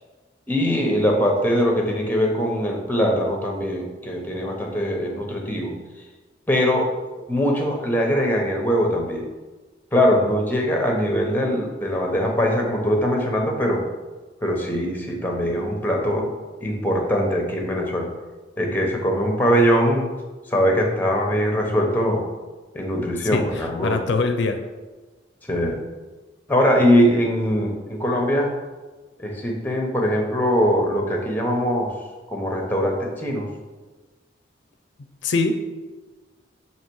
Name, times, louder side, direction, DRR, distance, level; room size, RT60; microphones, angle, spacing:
voice 1, 0.5-5.7 6.5-6.9 7.3-9.2 9.9-13.8 14.4-16.3 16.6-18.1 18.6-20.1 20.5-22.2 22.7-24.0 25.5-25.8 26.5-28.5 29.2-31.9 32.3-33.5, equal, 10° left, 1 dB, 0.8 m, -21 dB
voice 2, 23.3-24.6 35.0-35.5, left 3 dB, 75° left, 7 dB, 0.5 m, -23 dB
7.2 x 2.9 x 4.6 m, 1.3 s
head